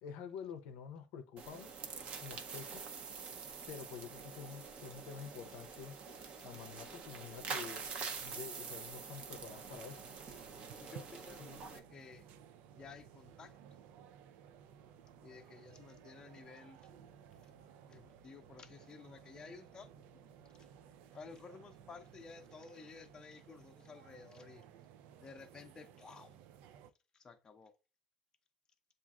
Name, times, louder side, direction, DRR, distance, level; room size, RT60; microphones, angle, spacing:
voice 1, 0.0-1.8 2.2-2.8 3.7-6.0 6.4-7.9 8.2-10.0 11.4-11.6, left 7 dB, 85° left, 0.5 m, -48 dB
sound 1, 1.4-11.8, right 5 dB, 55° right, 0.7 m, -46 dB
sound 2, 9.3-26.9, right 8 dB, 80° right, 0.3 m, -58 dB
voice 2, 10.5-11.4 11.7-12.3 12.7-13.5 15.2-16.9 17.9-19.9 20.6-20.7 21.1-24.7 25.2-26.4 27.1-27.7, left 5 dB, 30° left, 0.6 m, -54 dB
7.2 x 2.4 x 2.4 m
cardioid pair, 115°, 3 cm